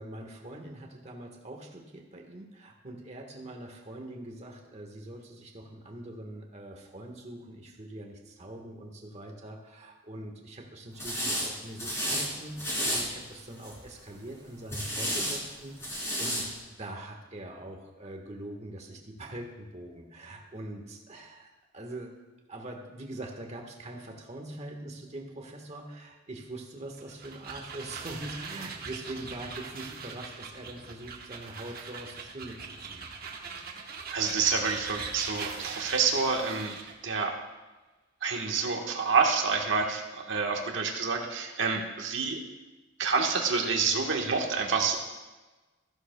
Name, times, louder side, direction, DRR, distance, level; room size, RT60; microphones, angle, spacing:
voice 1, 0.0-16.4 16.8-22.2 22.5-32.6 32.9-33.0, right 1 dB, 35° right, 2 dB, 1.4 m, -43 dB
sound 1, 11.0-11.5 11.8-12.3 12.6-13.0 13.6-13.9 14.7-15.4 15.8-16.4, equal, 15° left, 3.6 m, -31 dB
sound 2, 26.9-37.0, right 5 dB, 50° right, 1.1 m, -41 dB
voice 2, 34.1-36.8 37.0-37.4 38.2-42.4 43.0-45.0, right 5 dB, 70° right, 2 dB, 1.4 m, -28 dB
14.5 x 11.5 x 2.3 m, 1.2 s
head